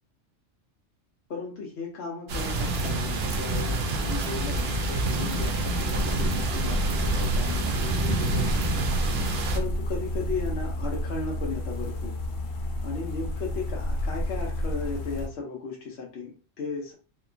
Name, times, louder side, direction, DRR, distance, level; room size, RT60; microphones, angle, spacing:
voice 1, 1.3-8.7 9.5-12.1 12.8-16.9, left 4 dB, 65° left, 0 dB, 0.8 m, -36 dB
sound 1, 2.3-9.6, right 2 dB, 65° right, 0.7 m, -27 dB
sound 2, 5.7-15.3, equal, 85° left, 1.0 m, -30 dB
2.9 x 2.2 x 2.4 m, 0.38 s
omnidirectional pair, 1.3 m